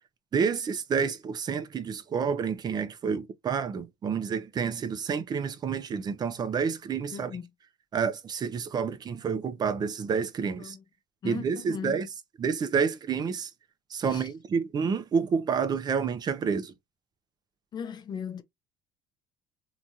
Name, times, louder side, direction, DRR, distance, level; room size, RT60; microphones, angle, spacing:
voice 1, 0.3-7.3 7.9-10.8 11.2-12.1 12.4-13.5 13.9-16.7, right 6 dB, 35° right, 0.6 m, -29 dB
voice 2, 7.1-7.5 10.6-10.8 11.2-12.1 14.1-14.3 17.7-18.4, left 7 dB, 35° left, 0.5 m, -38 dB
2.9 x 2.4 x 2.6 m
supercardioid pair, 100°, 12 cm